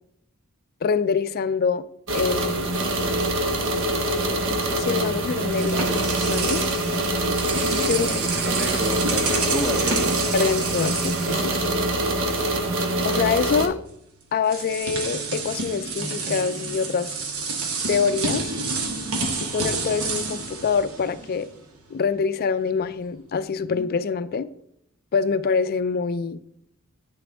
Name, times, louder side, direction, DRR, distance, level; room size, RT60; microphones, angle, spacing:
voice 1, 0.8-1.8 2.1-2.7 4.5-6.6 7.8-8.1 10.3-11.6 13.0-13.8 14.3-17.1 17.9-18.5 19.5-21.5 21.9-24.5 25.1-26.4, left 5 dB, 45° left, 0.4 m, -25 dB
sound 1, 2.1-13.7, right 1 dB, 60° right, 0.9 m, -24 dB
sound 2, 5.5-12.3 12.6-12.8 13.9-14.0 14.4-21.6, right 3 dB, 80° right, 1.1 m, -29 dB
voice 2, 7.8-10.2, equal, 5° right, 0.7 m, -31 dB
8.4 x 6.0 x 3.5 m
head